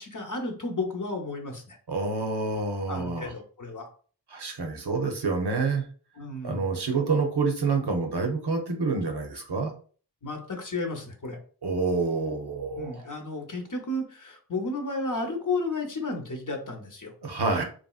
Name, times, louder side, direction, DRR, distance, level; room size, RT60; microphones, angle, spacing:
voice 1, 0.0-1.8 2.9-3.9 6.2-6.6 10.2-11.4 12.7-17.1, left 2 dB, 45° left, 3 dB, 0.8 m, -33 dB
voice 2, 1.9-3.3 4.3-5.9 6.4-9.7 11.6-13.1 17.2-17.6, right 4 dB, 65° right, 3 dB, 0.7 m, -27 dB
3.0 x 2.6 x 2.3 m, 0.42 s
wide cardioid pair, 45°, 42 cm